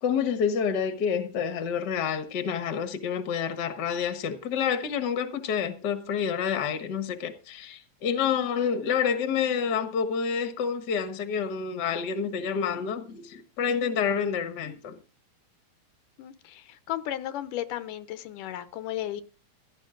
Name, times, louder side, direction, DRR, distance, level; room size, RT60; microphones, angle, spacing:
voice 1, 0.0-15.0, left 7 dB, 45° left, 1.6 m, -28 dB
voice 2, 16.2-19.2, left 12 dB, 85° left, 2.5 m, -34 dB
16.0 x 12.0 x 3.9 m
omnidirectional pair, 3.7 m